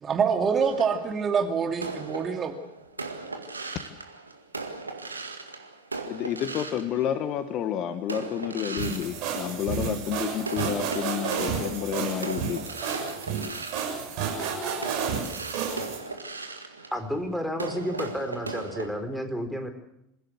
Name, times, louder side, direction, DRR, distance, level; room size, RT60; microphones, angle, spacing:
voice 1, 0.0-2.5, right 6 dB, 30° right, 5 dB, 2.4 m, -25 dB
sound 1, 0.6-7.5 8.0-10.1 10.4-18.9, right 3 dB, 85° right, 2.0 m, -38 dB
voice 2, 6.1-12.7, left 10 dB, 45° left, 11 dB, 1.6 m, -30 dB
sound 2, 8.8-16.0, right 6 dB, 50° right, 7.1 m, -31 dB
voice 3, 16.9-19.7, equal, ahead, 7 dB, 4.2 m, -31 dB
26.5 x 16.0 x 7.9 m, 0.80 s
figure-of-eight pair, 80°, 0 cm